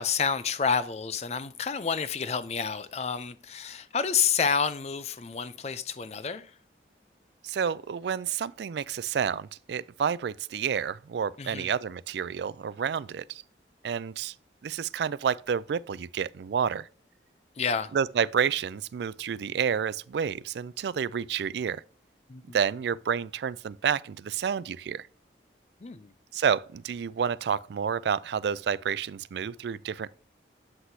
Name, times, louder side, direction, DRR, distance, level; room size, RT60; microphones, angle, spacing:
voice 1, 0.0-6.5 11.4-11.7 17.6-17.9 22.3-22.6 25.8-26.1, left 6 dB, 35° left, 0.4 m, -29 dB
voice 2, 7.4-13.4 13.8-14.3 14.6-16.9 17.9-21.8 22.5-25.1 26.3-30.1, right 7 dB, 70° right, 0.3 m, -29 dB
7.8 x 6.0 x 2.7 m
head